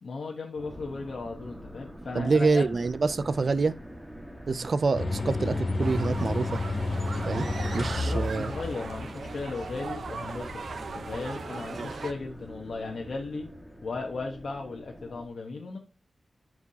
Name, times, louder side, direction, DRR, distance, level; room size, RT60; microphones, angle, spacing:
voice 1, 0.0-2.6 4.5-4.7 7.9-10.6 10.9-13.5 13.8-15.8, left 3 dB, 80° left, 1.1 m, -36 dB
sound 1, 0.6-15.3, equal, 5° right, 1.7 m, -45 dB
voice 2, 2.1-3.8 4.5-6.6 7.3-7.5 7.7-8.5 11.8-11.9, right 4 dB, 55° right, 0.4 m, -26 dB
sound 2, 4.9-13.0, left 2 dB, 60° left, 2.6 m, -33 dB
sound 3, 5.8-12.1, right 4 dB, 85° right, 0.8 m, -39 dB
13.5 x 4.7 x 2.8 m
wide cardioid pair, 120°, 0 cm